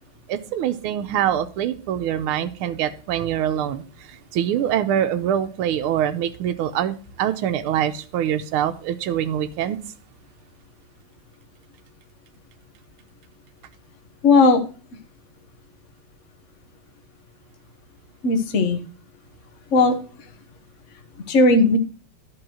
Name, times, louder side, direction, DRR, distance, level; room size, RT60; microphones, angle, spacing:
voice 1, 0.3-3.8 4.3-9.8, right 10 dB, 85° right, 8 dB, 1.6 m, -24 dB
voice 2, 14.2-14.6 18.2-18.8 19.7-20.0 21.3-21.8, left 3 dB, 40° left, 6 dB, 1.2 m, -16 dB
11.0 x 4.6 x 6.2 m, 0.38 s
omnidirectional pair, 2.4 m